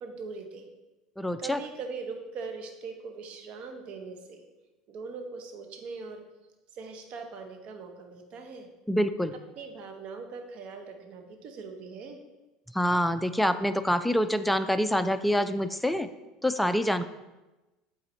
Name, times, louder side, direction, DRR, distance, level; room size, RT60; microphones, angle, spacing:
voice 1, 0.0-0.7 1.4-4.5 4.9-6.2 6.7-8.7 9.6-12.2, right 4 dB, 55° right, 5 dB, 0.9 m, -41 dB
voice 2, 1.2-1.6 8.9-9.3 12.7-16.1 16.4-17.0, equal, 5° left, 10 dB, 0.4 m, -26 dB
8.1 x 4.0 x 3.2 m, 1.1 s
hypercardioid pair, 80°, 2 cm